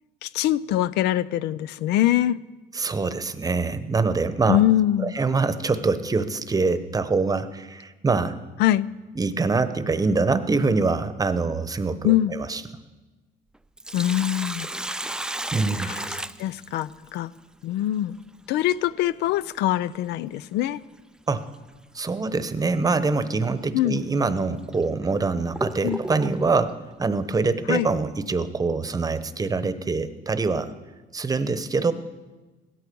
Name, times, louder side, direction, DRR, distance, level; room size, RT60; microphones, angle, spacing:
voice 1, 0.2-2.4 4.5-5.2 8.6-8.9 12.0-12.4 13.9-14.7 15.8-16.0 16.4-17.3 17.6-18.2 18.5-20.8 23.7-24.0 25.8-26.0 27.7-27.9, left 13 dB, 85° left, 18 dB, 0.5 m, -23 dB
voice 2, 2.7-4.6 5.0-8.4 9.1-12.6 15.5-15.9 21.3-21.4 21.9-30.7 31.1-31.9, right 4 dB, 20° right, 13 dB, 0.9 m, -24 dB
Sink (filling or washing), 13.5-17.2 19.6-19.7 21.5-21.7 22.2-22.3 23.1-23.3 24.0-24.1 24.7-26.6, right 1 dB, 5° right, 0.4 m, -33 dB
16.5 x 13.0 x 5.3 m, 1.2 s
cardioid pair, 110°, 17 cm